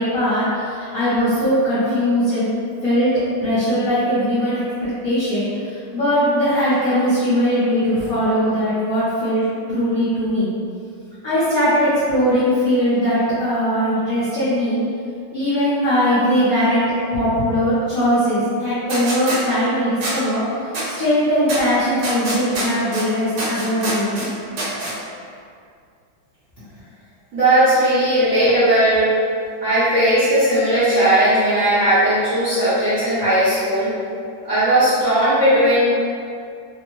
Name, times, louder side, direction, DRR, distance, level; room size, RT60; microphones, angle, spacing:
voice 1, 0.0-2.5 2.8-10.5 11.2-14.8 15.3-20.4 20.9-24.3, equal, 65° left, -12 dB, 0.9 m, -20 dB
sound 1, 18.9-19.4 20.0-20.1 20.7-20.9 21.5-21.6 22.0-23.0 23.4-24.3 24.6-24.9, right 1 dB, 70° right, 1.4 m, -25 dB
voice 2, 27.3-29.1 29.6-33.9 34.4-35.8, right 1 dB, 50° right, -14 dB, 0.9 m, -17 dB
3.3 x 2.0 x 3.0 m, 2.3 s
omnidirectional pair, 2.2 m